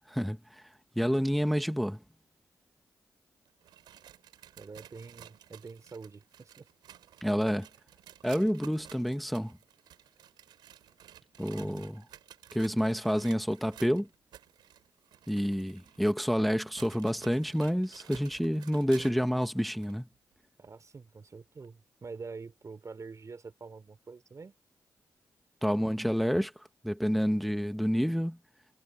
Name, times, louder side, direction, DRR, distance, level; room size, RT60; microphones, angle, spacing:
voice 1, 0.1-2.0 7.2-7.7 8.2-9.6 11.4-12.1 12.5-14.1 15.3-20.1 25.6-28.4, equal, ahead, 1.2 m, -29 dB
sound 1, 3.5-19.3 19.8-19.9 20.6-20.7 21.6-21.7, right 11 dB, 90° right, 6.1 m, -54 dB
voice 2, 4.6-6.7 11.5-11.9 20.6-24.5, right 4 dB, 50° right, 3.6 m, -46 dB
supercardioid pair, 45°, 7 cm